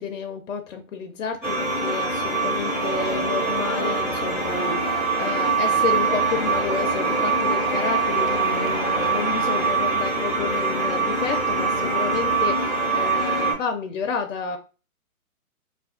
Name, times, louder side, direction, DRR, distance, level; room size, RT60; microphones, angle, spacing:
voice 1, 0.0-14.6, left 6 dB, 60° left, 5 dB, 0.5 m, -30 dB
sound 1, 1.4-13.5, right 4 dB, 5° right, 0.8 m, -24 dB
sound 2, 2.6-9.7, right 6 dB, 65° right, 0.5 m, -33 dB
2.4 x 2.3 x 2.3 m, 0.33 s
hypercardioid pair, 145°, 44 cm